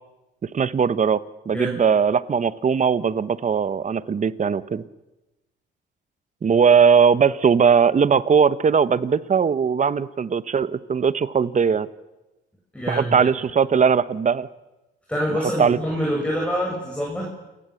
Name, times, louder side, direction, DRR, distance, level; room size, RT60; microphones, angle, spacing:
voice 1, 0.5-4.8 6.4-11.9 12.9-14.5 15.6-15.8, right 6 dB, 40° right, 15 dB, 1.1 m, -19 dB
voice 2, 1.5-1.8 12.7-13.3 15.1-17.3, equal, 5° left, -2 dB, 7.6 m, -26 dB
28.5 x 19.0 x 7.8 m, 1.0 s
cardioid pair, 90°, 20 cm